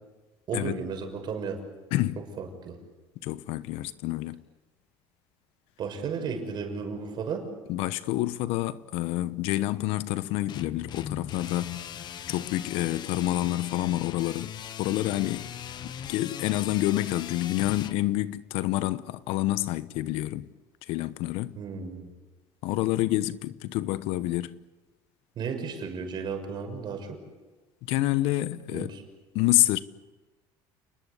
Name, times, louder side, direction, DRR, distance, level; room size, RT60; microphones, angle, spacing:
voice 1, 0.5-1.6 2.4-2.8 5.8-7.5 21.5-22.1 25.4-27.2 28.7-29.0, right 5 dB, 50° right, 6.4 m, -34 dB
voice 2, 3.2-4.4 7.7-11.8 12.3-14.5 14.8-15.5 15.8-20.5 20.9-21.6 22.6-24.5 27.9-28.9 29.3-29.8, left 16 dB, 75° left, 1.0 m, -28 dB
sound 1, 10.5-17.9, left 9 dB, 45° left, 1.2 m, -39 dB
30.0 x 20.5 x 8.4 m
cardioid pair, 120°, 10 cm